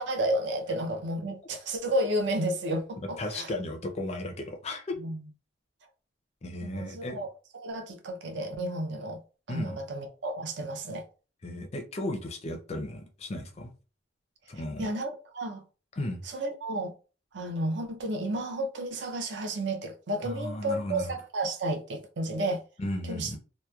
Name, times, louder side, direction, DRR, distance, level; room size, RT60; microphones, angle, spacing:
voice 1, 0.0-3.5 5.0-5.2 6.6-7.3 7.6-9.2 9.5-11.1 14.8-15.6 16.3-16.9 17.3-22.6 23.1-23.4, right 1 dB, 60° right, 0.5 m, -32 dB
voice 2, 3.2-4.9 6.4-7.2 9.5-9.8 11.4-13.7 14.5-14.9 15.9-16.2 20.2-21.1 22.8-23.4, left 1 dB, 30° left, 0.4 m, -35 dB
2.9 x 2.0 x 2.3 m
head